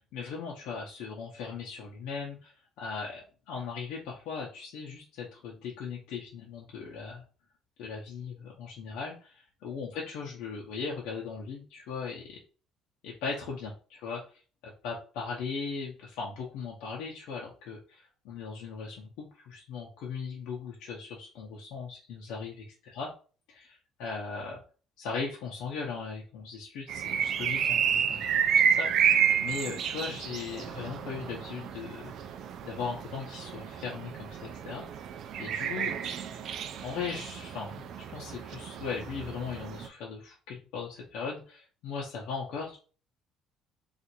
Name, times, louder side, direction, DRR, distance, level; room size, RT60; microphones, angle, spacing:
voice 1, 0.1-7.2 7.8-12.4 13.0-23.1 23.5-24.6 25.0-32.1 32.6-35.1 35.4-35.9 36.4-42.8, left 5 dB, 75° left, -3 dB, 0.7 m, -38 dB
sound 1, 26.9-39.9, right 8 dB, 50° right, 0.3 m, -30 dB
4.3 x 2.5 x 2.7 m, 0.38 s
cardioid pair, 170°, 0 cm